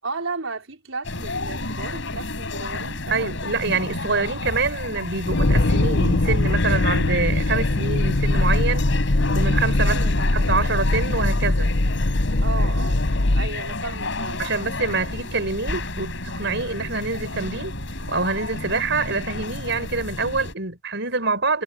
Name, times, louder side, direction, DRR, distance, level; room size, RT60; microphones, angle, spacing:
voice 1, 0.0-3.7 9.8-10.4 12.4-13.0 13.3-14.5, right 4 dB, 80° right, 5.1 m, -34 dB
sound 1, 1.0-20.5, left 2 dB, 65° left, 6.9 m, -31 dB
voice 2, 3.1-8.9 9.3-10.0 10.3-11.8 14.4-17.8 18.1-21.6, right 3 dB, 60° right, 5.5 m, -26 dB
sound 2, 5.2-13.5, left 2 dB, 90° left, 1.3 m, -21 dB
head